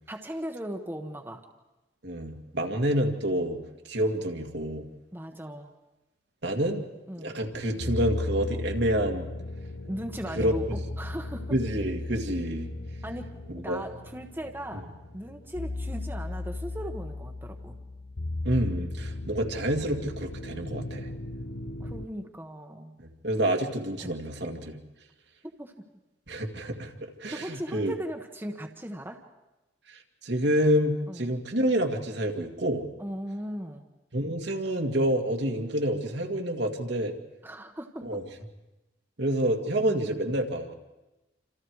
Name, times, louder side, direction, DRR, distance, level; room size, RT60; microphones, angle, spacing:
voice 1, 0.1-1.4 5.1-5.7 7.1-7.4 9.8-11.6 13.0-17.8 21.8-23.0 24.0-24.2 25.6-25.7 27.3-29.2 31.1-31.3 33.0-33.9 37.4-38.2 39.8-40.1, equal, 10° right, 3 dB, 1.2 m, -38 dB
voice 2, 2.0-3.6 3.8-4.9 6.4-6.9 7.2-9.3 10.4-10.5 11.5-12.7 13.7-13.8 18.4-21.1 23.0-24.8 26.3-27.9 29.9-32.9 34.1-37.1 38.0-38.2 39.2-40.7, right 1 dB, 65° right, 3 dB, 2.1 m, -28 dB
sound 1, 7.4-22.1, left 2 dB, 80° left, 1.0 m, -36 dB
28.0 x 26.5 x 4.8 m, 1.0 s
head